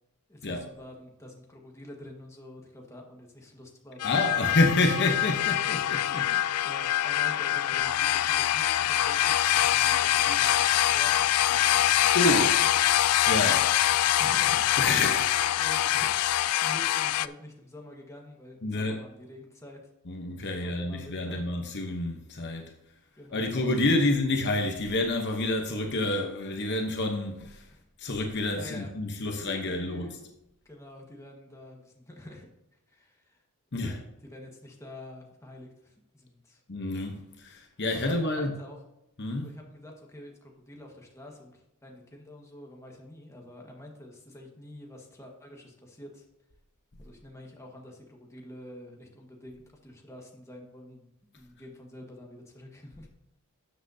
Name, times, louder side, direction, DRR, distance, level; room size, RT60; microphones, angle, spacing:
voice 1, 0.3-4.2 6.6-12.7 13.0-13.7 14.0-14.7 15.6-19.8 20.6-21.5 23.1-24.0 27.7-27.8 28.5-30.3 30.6-32.5 32.9-33.4 33.8-36.6 37.9-38.8 39.4-46.2 47.0-53.1, left 1 dB, 15° left, 1.5 m, -47 dB
sound 1, 4.0-17.3, left 12 dB, 85° left, 0.4 m, -24 dB
voice 2, 4.0-6.4 12.1-12.5 13.3-13.6 14.8-15.3 18.6-19.0 20.1-22.6 23.3-27.6 28.0-30.2 33.7-34.0 36.7-38.6 39.2-39.6, left 2 dB, 50° left, 0.9 m, -28 dB
12.5 x 7.6 x 2.8 m
head